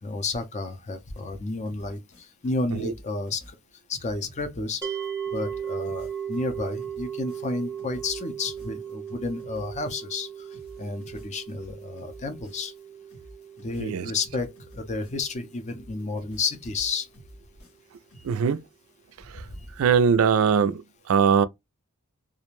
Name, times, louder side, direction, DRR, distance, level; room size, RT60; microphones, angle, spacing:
voice 1, 0.0-3.4 3.9-4.8 5.3-10.5 10.8-12.7 13.6-17.1 19.5-19.7, left 3 dB, 30° left, 0.5 m, -31 dB
sound 1, 1.1-2.5 2.8-5.1 5.3-10.2 10.5-12.8 13.1-15.4 15.7-18.3, right 1 dB, 75° left, 1.1 m, -50 dB
sound 2, 4.8-16.0, right 8 dB, 10° right, 0.9 m, -37 dB
voice 2, 13.8-14.1 18.2-18.7 19.2-21.5, right 6 dB, 65° right, 0.3 m, -22 dB
2.4 x 2.1 x 3.0 m
head